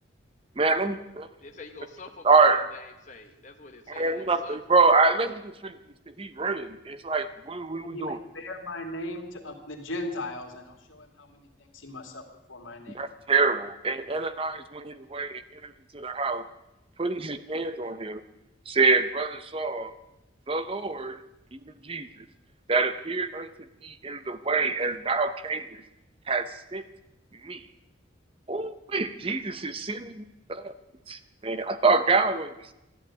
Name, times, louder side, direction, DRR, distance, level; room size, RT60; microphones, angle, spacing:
voice 1, 0.6-1.3 2.2-2.7 3.9-5.8 6.2-8.2 12.9-16.5 17.0-18.2 18.7-19.9 20.5-21.2 21.5-22.1 22.7-23.5 23.8-25.8 26.3-26.8 27.4-27.6 28.5-30.7 31.1-32.7, right 4 dB, 25° right, 11 dB, 0.7 m, -26 dB
voice 2, 1.4-4.6, left 3 dB, 35° left, 4 dB, 1.2 m, -46 dB
voice 3, 7.7-13.0, left 1 dB, 80° left, 3 dB, 2.6 m, -38 dB
14.0 x 11.5 x 8.4 m, 0.93 s
head